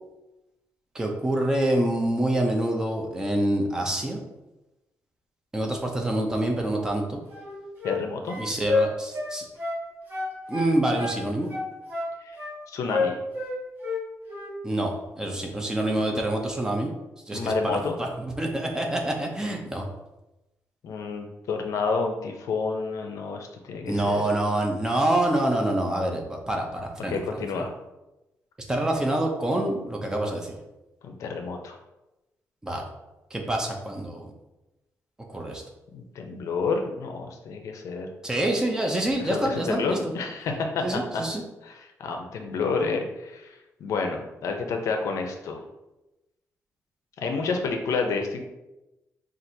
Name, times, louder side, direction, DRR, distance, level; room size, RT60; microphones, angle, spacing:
voice 1, 0.9-4.2 5.5-7.2 8.3-9.5 10.5-11.5 14.6-16.9 17.3-19.9 23.9-27.2 27.6-27.7 28.7-30.6 32.6-32.8 33.3-34.3 35.3-35.6 38.2-40.0 40.8-41.4, right 1 dB, 10° right, 1 dB, 0.5 m, -26 dB
sound 1, 7.3-8.0 8.3-9.8 10.1-11.2 11.5-12.5 12.9-14.0 14.3-14.5, left 3 dB, 35° right, 1.4 m, -29 dB
voice 2, 7.8-8.4 12.2-12.4 12.7-13.2 17.3-18.0 20.8-24.3 27.1-27.7 31.0-31.8 35.9-38.1 39.2-41.2 41.6-43.5 43.8-45.6 47.2-48.5, left 4 dB, 65° left, 4 dB, 0.6 m, -29 dB
5.8 x 2.5 x 2.7 m, 0.99 s
wide cardioid pair, 160°, 6 cm